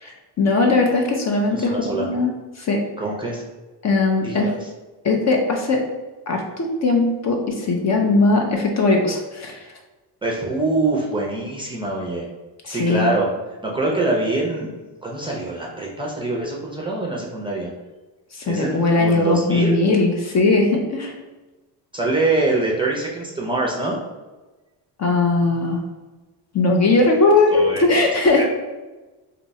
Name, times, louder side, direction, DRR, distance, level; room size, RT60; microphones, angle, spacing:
voice 1, 0.0-2.8 3.8-4.5 5.0-5.8 6.3-9.7 12.6-13.1 18.3-21.1 25.0-25.8 26.5-28.4, left 3 dB, 40° left, 1 dB, 0.5 m, -19 dB
voice 2, 1.5-2.0 3.0-3.4 4.2-4.6 10.2-12.3 12.7-13.3 13.6-14.7 15.0-17.7 18.5-19.8 21.9-24.0 27.5-27.8 28.4-28.5, right 2 dB, 10° right, -3 dB, 0.5 m, -24 dB
2.8 x 2.2 x 4.0 m, 1.2 s
cardioid pair, 120°, 44 cm